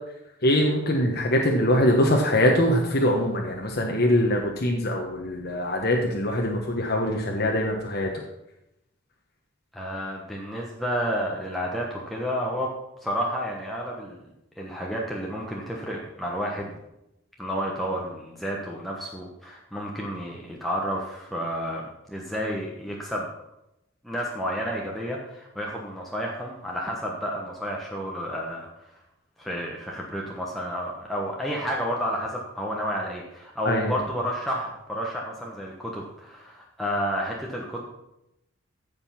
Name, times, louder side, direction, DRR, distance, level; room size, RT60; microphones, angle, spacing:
voice 1, 0.4-8.1 33.6-34.0, left 1 dB, 50° left, 0 dB, 1.2 m, -23 dB
voice 2, 9.7-12.7 13.0-14.2 14.6-16.8 17.4-23.3 24.0-28.7 29.4-37.8, equal, ahead, -3 dB, 1.2 m, -31 dB
14.5 x 5.4 x 5.8 m, 0.87 s
head